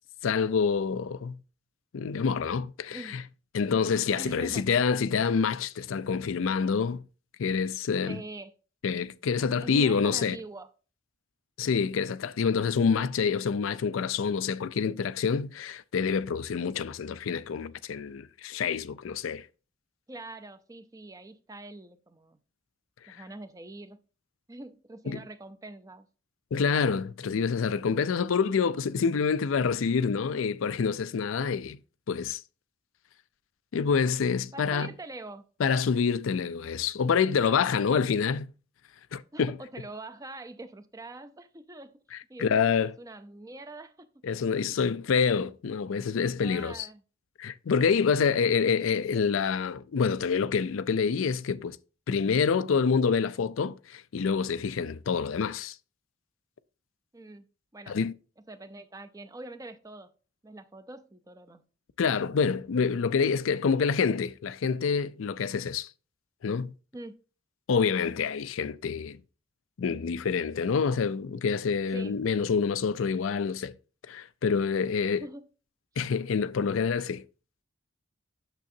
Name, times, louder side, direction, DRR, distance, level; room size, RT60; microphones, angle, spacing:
voice 1, 0.2-1.4 1.9-3.2 3.5-7.0 7.4-8.2 8.8-10.4 11.6-19.5 25.1-25.2 26.5-31.8 32.1-32.4 33.7-34.9 35.6-38.5 39.1-39.5 42.4-42.9 44.2-46.9 47.4-51.8 52.1-55.8 57.9-58.1 62.0-65.9 66.4-66.7 67.7-69.2 69.8-73.7 74.1-75.3 76.0-77.2, left 6 dB, 80° left, 0.4 m, -27 dB
voice 2, 2.9-3.3 4.1-4.6 8.1-8.5 9.5-10.7 20.1-22.4 23.1-24.0 24.5-26.1 34.5-35.4 39.3-42.0 42.3-44.2 44.6-44.8 46.4-47.0 57.1-57.5 57.7-58.0 58.5-60.1 60.4-61.6 66.9-67.2 71.9-72.2 75.1-75.5, right 2 dB, 15° right, 0.5 m, -44 dB
9.0 x 6.8 x 2.7 m
head